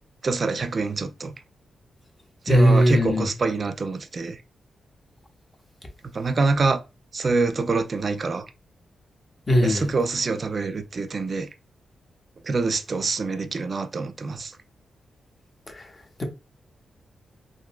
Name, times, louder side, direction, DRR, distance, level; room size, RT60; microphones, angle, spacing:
voice 1, 0.2-1.3 2.5-4.4 6.1-6.8 7.1-8.5 9.6-11.5 12.4-14.6, right 3 dB, 50° right, 0.4 m, -25 dB
voice 2, 2.5-3.3 9.5-9.9, equal, 30° left, 0.8 m, -18 dB
3.7 x 2.1 x 2.3 m
cardioid pair, 80°, 0 cm